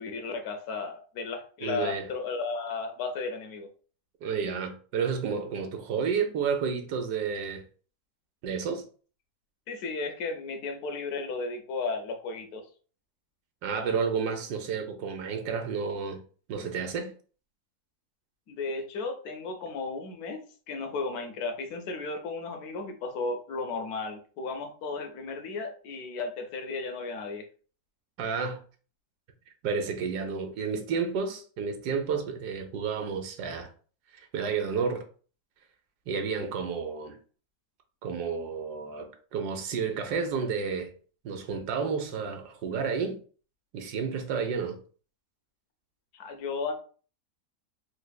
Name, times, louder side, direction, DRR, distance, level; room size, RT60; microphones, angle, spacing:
voice 1, 0.0-3.7 9.7-12.6 18.5-20.4 20.7-27.5 46.1-46.7, left 4 dB, 75° left, 1.1 m, -34 dB
voice 2, 1.6-2.1 4.2-7.6 8.4-8.8 13.6-16.2 16.5-17.1 28.2-28.6 29.6-33.7 34.1-35.1 36.1-37.2 38.0-40.9 41.2-43.2 43.7-44.8, right 6 dB, 85° right, 1.2 m, -31 dB
3.4 x 3.2 x 2.2 m
omnidirectional pair, 1.7 m